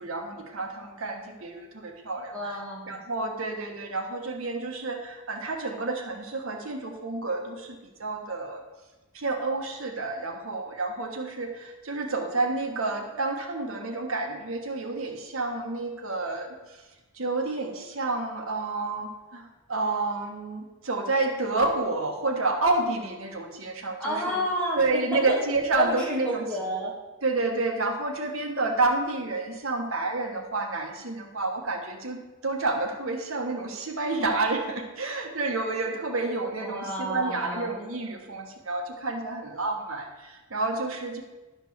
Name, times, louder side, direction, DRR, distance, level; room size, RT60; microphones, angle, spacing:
voice 1, 0.0-2.6 2.9-8.6 9.1-16.8 17.1-24.2 24.8-26.5 27.2-41.2, right 3 dB, 75° right, 3 dB, 1.3 m, -29 dB
voice 2, 2.3-3.0 24.0-25.4 25.7-27.0 36.6-37.7, equal, 5° left, -4 dB, 2.1 m, -30 dB
11.5 x 4.5 x 6.9 m, 1.1 s
head